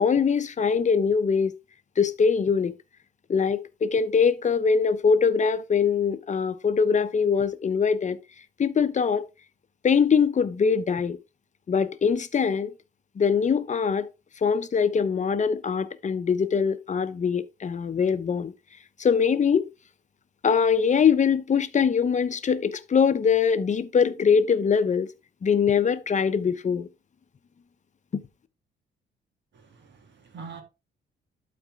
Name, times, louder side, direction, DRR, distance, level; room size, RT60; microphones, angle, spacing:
voice 1, 0.0-1.5 2.0-2.7 3.3-8.2 8.6-9.2 9.8-11.2 11.7-12.7 13.2-14.1 14.4-18.5 19.0-19.7 20.4-25.1 25.4-26.9 28.1-28.2, left 6 dB, 35° left, 0.9 m, -22 dB
voice 2, 29.5-30.6, right 5 dB, 65° right, 2.5 m, -44 dB
11.5 x 4.3 x 3.6 m
cardioid pair, 90°, 20 cm